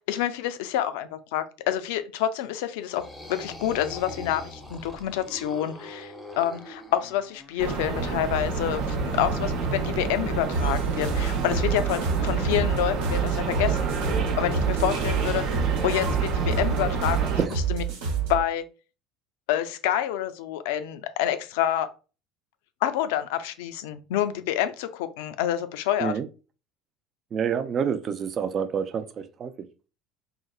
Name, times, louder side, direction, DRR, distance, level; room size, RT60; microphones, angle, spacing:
voice 1, 0.1-13.9 14.4-15.4 15.8-17.8 18.3-18.6 19.5-21.9 22.8-26.2, left 11 dB, 80° left, 0.4 m, -28 dB
sound 1, 2.8-7.6, left 1 dB, 10° left, 0.6 m, -42 dB
sound 2, 7.6-17.5, right 4 dB, 70° right, 0.8 m, -28 dB
sound 3, 10.5-18.4, right 6 dB, 90° right, 1.1 m, -28 dB
voice 2, 27.3-29.5, right 7 dB, 35° right, 0.3 m, -27 dB
3.8 x 2.0 x 2.3 m
supercardioid pair, 130°, 0 cm